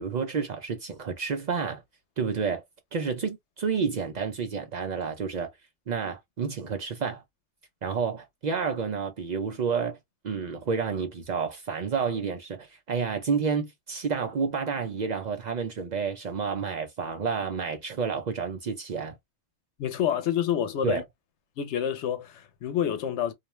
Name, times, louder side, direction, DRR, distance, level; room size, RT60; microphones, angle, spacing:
voice 1, 0.0-1.8 2.2-2.6 2.9-5.5 5.9-7.2 7.8-10.0 10.2-19.2 20.8-21.0, right 5 dB, 55° right, 0.5 m, -30 dB
voice 2, 19.8-21.0 21.6-23.3, left 9 dB, 85° left, 0.9 m, -28 dB
2.4 x 2.2 x 3.0 m
omnidirectional pair, 1.2 m